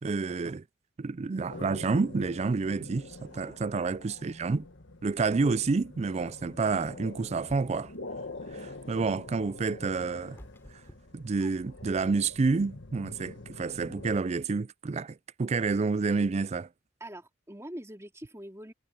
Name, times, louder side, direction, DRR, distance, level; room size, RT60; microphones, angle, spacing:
voice 1, 0.0-0.6 1.0-4.7 5.0-7.9 8.5-10.4 11.1-16.7, right 4 dB, 35° right, 0.4 m, -29 dB
sound 1, 1.5-14.2, left 2 dB, 65° left, 2.0 m, -46 dB
sound 2, 7.3-8.0 9.6-11.9, equal, 10° left, 3.4 m, -53 dB
voice 2, 17.0-18.7, right 1 dB, 15° right, 3.4 m, -44 dB
head